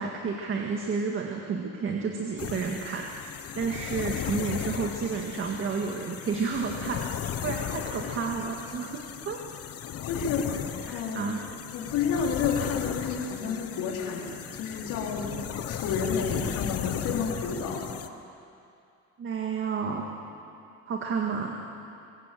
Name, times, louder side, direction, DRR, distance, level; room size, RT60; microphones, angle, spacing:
voice 1, 0.0-3.2 3.6-7.0 7.4-9.5 10.9-11.4 19.2-20.0 20.9-21.5, right 5 dB, 40° right, 1 dB, 1.9 m, -31 dB
sound 1, 2.4-18.1, left 10 dB, 50° left, 1.1 m, -35 dB
voice 2, 10.0-10.6 10.9-11.3 11.7-15.4 15.7-17.9, left 5 dB, 80° left, -2 dB, 3.9 m, -30 dB
24.5 x 16.0 x 7.7 m, 2.6 s
cardioid pair, 130°, 31 cm